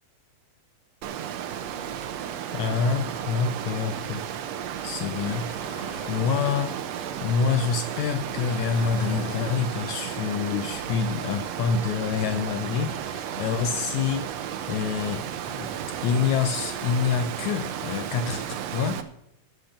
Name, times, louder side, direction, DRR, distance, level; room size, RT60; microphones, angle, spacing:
Water, 1.0-19.0, right 9 dB, 75° right, 1.6 m, -33 dB
voice 1, 2.5-4.3 4.8-5.5 6.1-14.4 14.7-15.7 16.0-19.0, left 6 dB, 90° left, 10 dB, 1.6 m, -27 dB
sound 1, 4.6-13.8, left 3 dB, 45° left, 2.9 m, -45 dB
11.5 x 7.8 x 6.8 m, 0.78 s
omnidirectional pair, 4.3 m